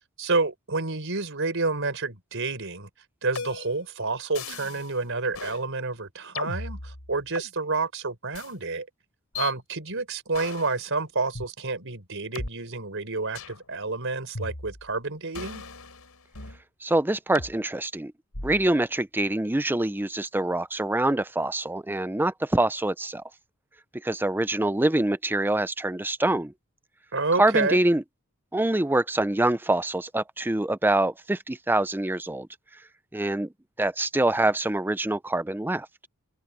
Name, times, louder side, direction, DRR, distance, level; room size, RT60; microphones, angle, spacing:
voice 1, 0.2-2.9 3.2-8.9 9.3-15.6 27.1-27.8, right 3 dB, 60° right, 4.9 m, -29 dB
sound 1, 3.3-3.8 4.3-4.9 5.3-5.6 6.3-7.5 8.3-8.5 9.3-9.5 10.3-10.8 11.3-11.5 12.3-12.5 13.3-13.6 14.3-14.9 15.3-16.6 17.3-17.5 18.3-18.7, left 3 dB, 80° left, 5.2 m, -37 dB
voice 2, 16.8-18.1 18.4-23.2 23.9-26.5 27.4-28.0 28.5-32.5 33.1-33.5 33.8-35.9, right 1 dB, 10° right, 0.5 m, -25 dB
open air
head